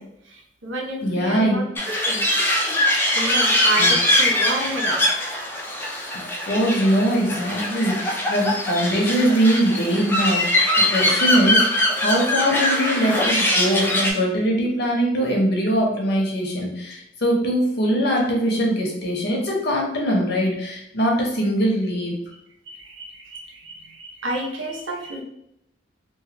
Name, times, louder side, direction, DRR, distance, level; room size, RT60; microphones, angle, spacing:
voice 1, 0.0-2.3 3.1-5.0 22.7-25.2, right 1 dB, 75° right, 0 dB, 0.7 m, -30 dB
voice 2, 1.0-1.6 3.8-3.9 6.5-10.6 10.9-11.7 12.0-22.1, equal, 55° left, -1 dB, 0.9 m, -22 dB
sound 1, 1.8-14.1, left 1 dB, 10° left, 0.4 m, -22 dB
3.1 x 2.2 x 2.9 m, 0.78 s
head